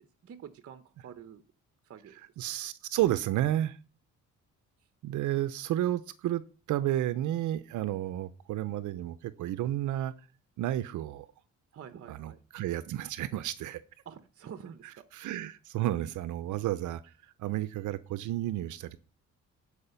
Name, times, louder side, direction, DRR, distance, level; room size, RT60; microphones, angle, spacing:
voice 1, 0.0-1.4 1.8-2.2 4.8-4.9 11.7-12.4 14.0-15.2, right 8 dB, 50° right, 0.8 m, -48 dB
voice 2, 2.4-3.8 5.0-6.4 6.7-10.1 10.6-11.3 12.1-13.8 15.1-19.0, right 13 dB, 80° right, 0.6 m, -31 dB
11.5 x 4.9 x 5.6 m
cardioid pair, 90°, 30 cm